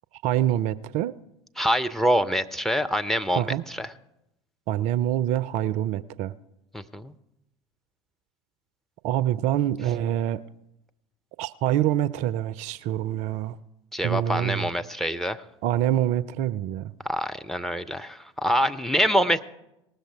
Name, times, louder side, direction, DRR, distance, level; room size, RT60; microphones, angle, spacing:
voice 1, 0.2-1.1 3.4-3.6 4.7-6.3 9.0-10.4 11.4-13.6 14.0-14.7 15.6-16.9, right 12 dB, 45° right, 0.4 m, -25 dB
voice 2, 1.6-3.9 6.7-7.1 13.9-15.4 17.0-19.5, equal, ahead, 0.6 m, -25 dB
19.5 x 6.5 x 4.6 m
figure-of-eight pair, 70°, 16 cm